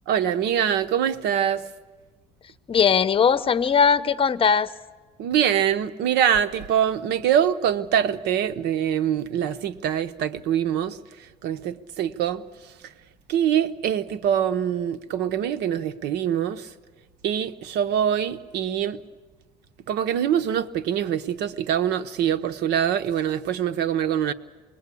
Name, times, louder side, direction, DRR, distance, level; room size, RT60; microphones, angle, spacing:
voice 1, 0.1-1.6 5.2-11.0 11.4-12.4 13.3-16.7 17.2-19.0 19.9-24.3, right 9 dB, 85° right, 1.0 m, -24 dB
voice 2, 2.7-4.7, left 6 dB, 35° left, 0.9 m, -19 dB
26.5 x 19.5 x 8.5 m
cardioid pair, 110°, 17 cm